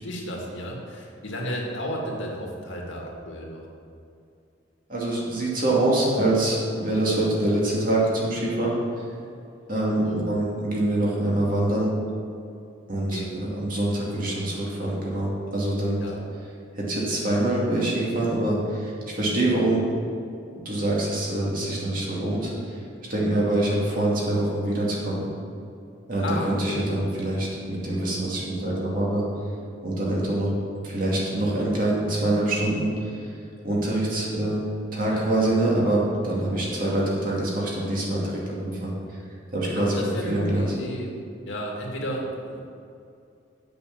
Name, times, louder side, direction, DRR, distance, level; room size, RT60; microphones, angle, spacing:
voice 1, 0.0-3.6 10.0-10.3 13.1-13.4 16.0-16.2 26.2-27.0 35.1-35.5 39.7-41.2 41.5-42.6, equal, 80° left, -1 dB, 2.1 m, -33 dB
voice 2, 4.9-8.8 9.7-11.9 12.9-16.0 16.8-19.8 20.5-22.8 23.1-25.2 26.1-29.2 29.8-30.5 30.8-32.9 33.6-34.6 34.9-38.2 38.5-38.9 39.5-40.0 40.2-40.7, right 1 dB, 45° right, -4 dB, 2.5 m, -25 dB
8.2 x 6.4 x 7.4 m, 2.5 s
head